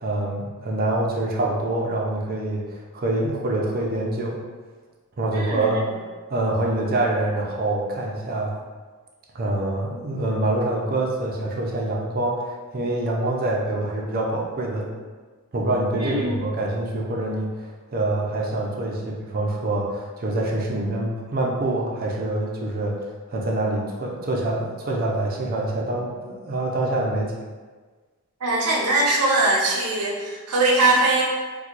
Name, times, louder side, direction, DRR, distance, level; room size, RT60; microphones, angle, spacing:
voice 1, 0.0-4.4 5.2-5.8 6.3-8.5 9.3-14.9 15.5-17.5 17.9-23.0 23.3-27.3, right 2 dB, 45° right, -2 dB, 0.6 m, -25 dB
voice 2, 5.3-5.8 16.0-16.5 28.4-31.2, right 2 dB, 85° right, -2 dB, 0.6 m, -21 dB
4.3 x 2.2 x 2.5 m, 1.4 s
head